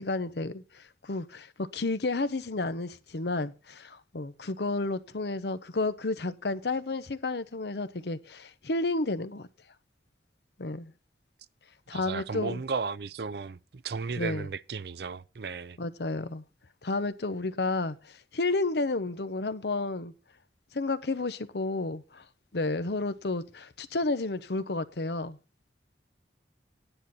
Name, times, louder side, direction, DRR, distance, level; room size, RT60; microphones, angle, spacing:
voice 1, 0.0-9.5 10.6-10.9 11.9-12.6 14.2-14.5 15.8-16.4 16.8-20.1 20.7-22.2 22.5-25.4, left 2 dB, 65° left, 0.8 m, -31 dB
voice 2, 11.9-15.8, right 4 dB, 60° right, 0.5 m, -35 dB
10.5 x 10.0 x 4.1 m
head